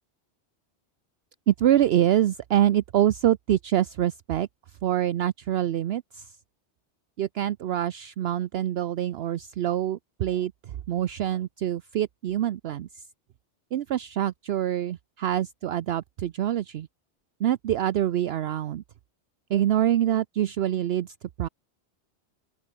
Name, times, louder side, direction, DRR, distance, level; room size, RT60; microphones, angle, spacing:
voice 1, 1.5-4.5 4.8-6.3 7.2-13.0 13.7-16.9 17.4-18.8 19.5-21.5, right 11 dB, 65° right, 0.8 m, -25 dB
open air
omnidirectional pair, 1.2 m